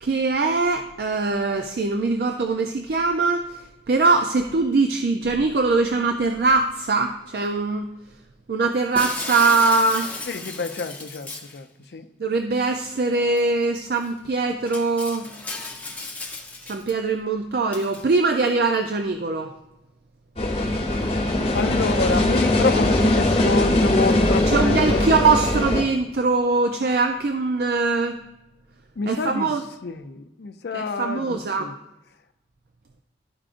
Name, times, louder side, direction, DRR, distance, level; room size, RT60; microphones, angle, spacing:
voice 1, 0.0-7.9 8.5-10.1 12.2-15.3 16.7-19.5 24.5-28.2 29.1-29.6 30.7-31.7, right 3 dB, 60° right, 5 dB, 0.4 m, -22 dB
Shatter, 9.0-11.6 13.4-13.5 14.0-14.1 14.7-16.9 17.7-18.0, left 3 dB, 10° left, 0.7 m, -34 dB
voice 2, 10.3-12.1 20.6-21.1 21.5-25.1 29.0-29.5 29.8-31.7, left 3 dB, 70° left, 8 dB, 0.5 m, -28 dB
sound 1, 20.4-25.8, left 1 dB, 35° left, 1.0 m, -21 dB
12.0 x 4.9 x 2.5 m, 0.96 s
head